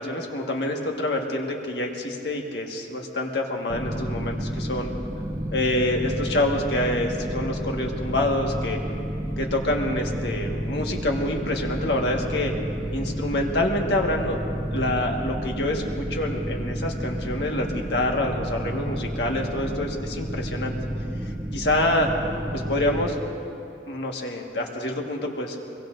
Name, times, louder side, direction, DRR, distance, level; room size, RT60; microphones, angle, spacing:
voice 1, 0.0-4.9 5.5-8.8 9.4-12.5 12.9-14.4 14.7-20.7 21.2-22.1 22.5-23.1 23.9-25.6, left 1 dB, 65° left, 1 dB, 1.6 m, -26 dB
sound 1, 3.7-23.2, right 1 dB, 15° right, 0.8 m, -31 dB
23.5 x 23.0 x 2.6 m, 2.8 s
head